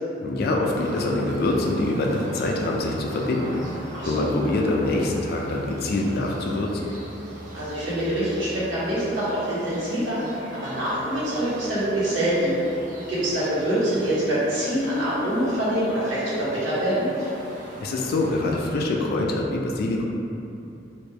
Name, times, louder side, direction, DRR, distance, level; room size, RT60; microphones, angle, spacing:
voice 1, 0.2-3.6 4.0-6.8 17.8-20.0, left 2 dB, 55° left, 0 dB, 0.3 m, -25 dB
sound 1, 0.7-18.7, equal, 40° right, 0.7 m, -39 dB
voice 2, 3.9-4.3 7.5-12.5 13.1-17.1, right 1 dB, 90° right, -11 dB, 1.2 m, -25 dB
3.3 x 2.6 x 3.3 m, 2.8 s
head